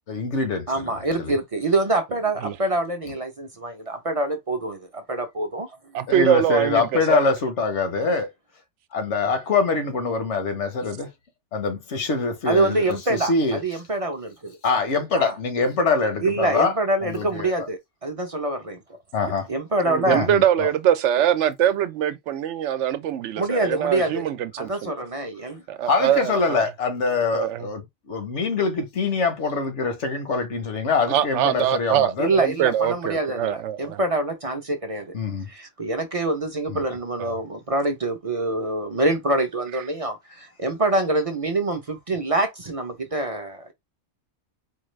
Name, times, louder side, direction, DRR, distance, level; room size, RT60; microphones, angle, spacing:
voice 1, 0.1-0.7 1.2-1.4 6.1-8.3 8.9-11.1 11.5-13.6 14.6-16.7 17.0-17.7 19.1-19.5 20.1-20.7 25.9-27.8 28.1-32.3 35.1-35.5 36.7-36.8, left 4 dB, 75° left, 1.3 m, -24 dB
voice 2, 0.7-5.7 12.5-14.6 15.1-15.3 16.2-18.8 19.5-20.3 23.4-24.2 24.6-25.6 32.2-35.1 35.5-43.7, right 2 dB, 35° right, 0.6 m, -25 dB
voice 3, 5.9-7.2 19.8-24.9 25.7-26.6 27.3-27.7 31.1-34.0 37.2-37.3, right 10 dB, 80° right, 0.9 m, -23 dB
4.4 x 2.4 x 3.1 m
omnidirectional pair, 1.2 m